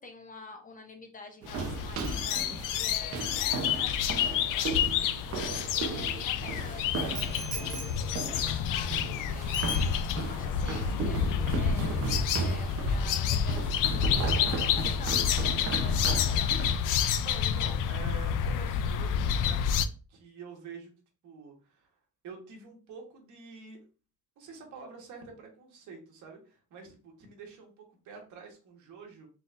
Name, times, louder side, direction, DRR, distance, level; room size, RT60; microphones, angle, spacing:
voice 1, 0.0-4.8 5.4-16.5, left 3 dB, 25° left, 5 dB, 0.6 m, -48 dB
sound 1, 1.4-16.8, right 3 dB, 50° right, 0.7 m, -36 dB
sound 2, 1.5-19.9, left 8 dB, 90° left, 0.5 m, -29 dB
Bicycle bell, 2.0-5.8 7.1-9.2 9.5-10.4 10.7-11.0, right 2 dB, 25° right, 1.2 m, -45 dB
voice 2, 17.2-19.6 20.1-20.9 21.2-21.9 22.2-23.8 24.4-29.3, right 5 dB, 70° right, 1 dB, 1.5 m, -47 dB
4.0 x 3.9 x 2.5 m, 0.35 s
cardioid pair, 165°, 31 cm